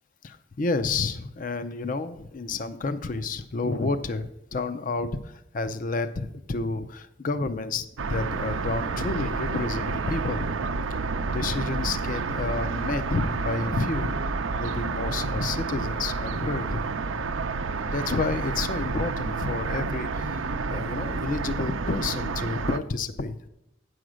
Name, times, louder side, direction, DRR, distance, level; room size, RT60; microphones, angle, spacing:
voice 1, 0.2-10.5 10.9-11.0 11.3-14.1 14.6-16.8 17.8-20.4 20.7-23.4, left 3 dB, 45° left, 12 dB, 0.5 m, -30 dB
sound 1, 8.0-22.8, right 4 dB, 85° right, 0.6 m, -29 dB
9.4 x 6.4 x 6.2 m, 0.86 s
head